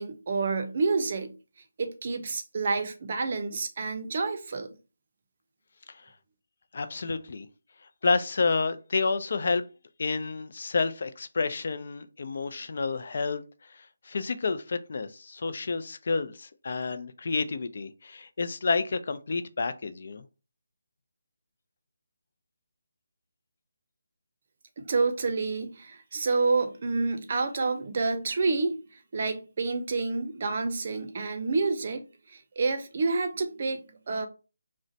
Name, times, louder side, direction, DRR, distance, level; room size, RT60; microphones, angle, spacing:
voice 1, 0.0-1.3 1.8-4.7 24.8-28.8 29.1-34.3, right 3 dB, 45° right, 0.5 m, -29 dB
voice 2, 6.7-7.5 8.0-9.6 10.0-20.2, left 4 dB, 55° left, 0.4 m, -30 dB
2.4 x 2.1 x 3.9 m
hypercardioid pair, 170°, 0 cm